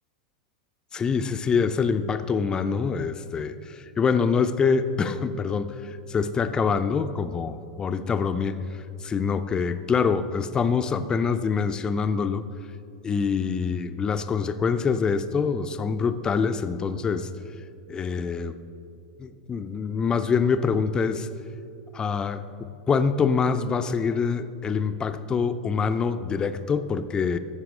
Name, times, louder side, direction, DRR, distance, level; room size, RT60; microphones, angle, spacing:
voice 1, 0.9-8.6 9.0-12.4 13.0-17.3 17.9-18.6 19.2-21.3 21.9-22.4 22.9-27.4, left 5 dB, 20° left, 10 dB, 0.4 m, -25 dB
13.5 x 4.7 x 3.7 m, 2.6 s
figure-of-eight pair, 95°, 4 cm